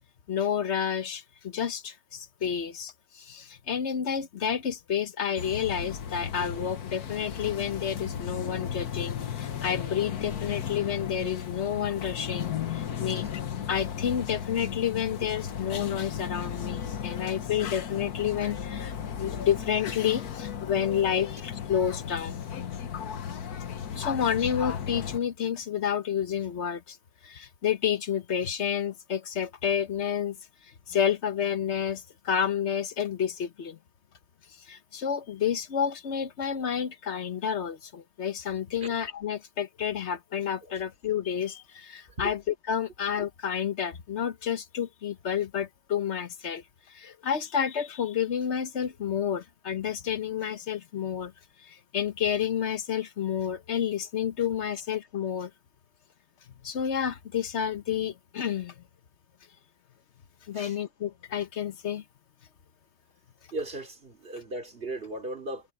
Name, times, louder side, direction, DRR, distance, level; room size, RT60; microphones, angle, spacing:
voice 1, 0.3-13.3 13.7-22.4 23.9-27.0 27.2-30.4 30.9-33.8 34.6-42.4 42.7-51.3 51.6-55.5 56.6-58.8 60.5-62.0, left 8 dB, 50° left, 1.2 m, -30 dB
sound 1, 5.4-25.2, left 8 dB, 90° left, 1.7 m, -35 dB
voice 2, 63.5-65.7, right 2 dB, 40° right, 3.2 m, -37 dB
omnidirectional pair, 1.6 m